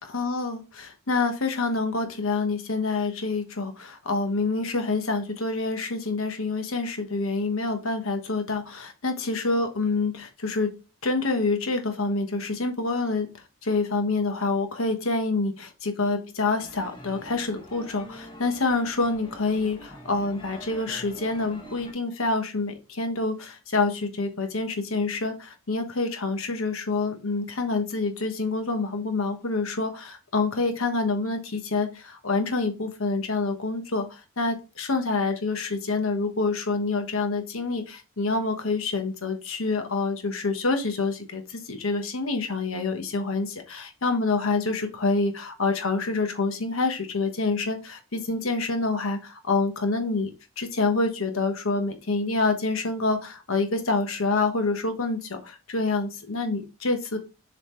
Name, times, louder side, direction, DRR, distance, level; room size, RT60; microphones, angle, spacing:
voice 1, 0.0-10.7 11.0-13.3 13.6-50.3 50.6-57.2, left 3 dB, 65° left, 5 dB, 1.3 m, -27 dB
sound 1, 16.6-21.9, equal, 20° left, 1.3 m, -45 dB
7.1 x 4.1 x 3.2 m, 0.29 s
head